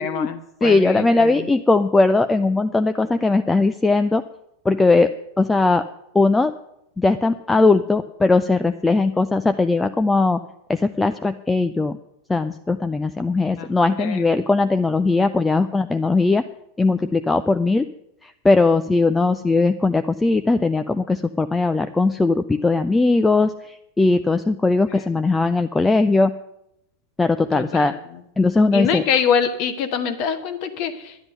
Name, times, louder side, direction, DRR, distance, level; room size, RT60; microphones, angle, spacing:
voice 1, 0.0-1.5 13.6-13.7 14.0-14.2 24.9-25.1 27.5-28.0 28.7-31.2, left 7 dB, 45° left, 9 dB, 1.1 m, -24 dB
voice 2, 0.6-4.2 4.6-5.1 5.4-5.9 6.1-6.5 7.0-10.4 10.7-12.0 12.3-16.5 16.8-17.9 18.2-26.3 27.2-27.9 28.4-29.0, left 3 dB, 10° left, 9 dB, 0.4 m, -19 dB
10.5 x 10.5 x 6.5 m, 0.80 s
figure-of-eight pair, 90°, 0 cm